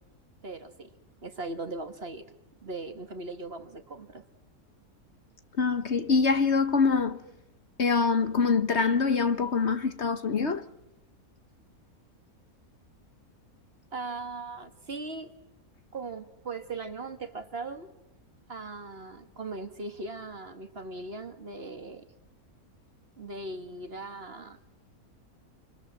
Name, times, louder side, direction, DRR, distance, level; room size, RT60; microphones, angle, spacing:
voice 1, 0.4-0.9 1.2-2.2 2.6-4.2 13.9-15.3 15.9-17.9 18.5-22.1 23.2-24.6, right 3 dB, 40° right, 2.0 m, -39 dB
voice 2, 5.6-7.2 7.8-10.6, left 5 dB, 50° left, 1.4 m, -24 dB
28.0 x 22.5 x 7.5 m
omnidirectional pair, 1.5 m